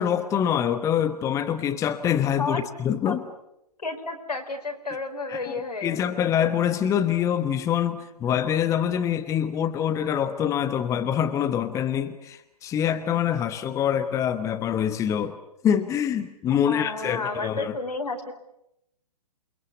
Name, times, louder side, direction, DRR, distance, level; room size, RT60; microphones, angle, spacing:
voice 1, 0.0-3.2 5.3-5.5 5.8-15.4 15.6-17.8, left 9 dB, 15° left, 9 dB, 1.2 m, -25 dB
voice 2, 3.8-6.2 16.7-18.3, left 3 dB, 80° left, 4 dB, 4.7 m, -31 dB
28.5 x 22.5 x 8.3 m, 0.83 s
figure-of-eight pair, 125°, 20 cm